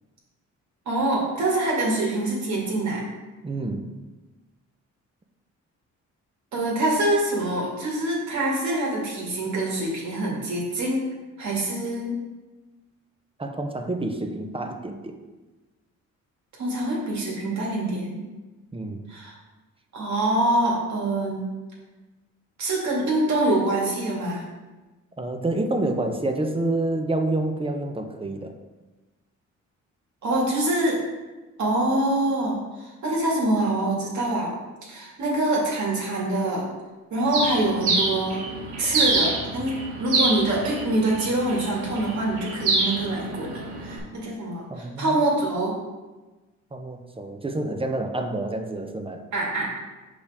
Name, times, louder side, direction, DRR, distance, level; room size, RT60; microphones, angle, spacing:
voice 1, 0.9-3.0 6.5-11.0 11.4-12.1 16.6-18.2 19.1-19.3 19.9-21.5 22.6-24.4 30.2-31.0 31.6-34.5 34.9-36.6 37.1-38.4 38.8-45.7 49.3-49.8, right 1 dB, 65° right, -3 dB, 2.2 m, -25 dB
voice 2, 3.4-3.9 13.4-15.1 18.7-19.0 25.2-28.6 44.7-45.2 46.7-49.2, right 2 dB, 20° right, 5 dB, 0.7 m, -28 dB
Bird, 37.3-44.0, right 3 dB, 85° right, 2.0 m, -27 dB
6.7 x 5.2 x 3.5 m, 1.2 s
cardioid pair, 90°, 30 cm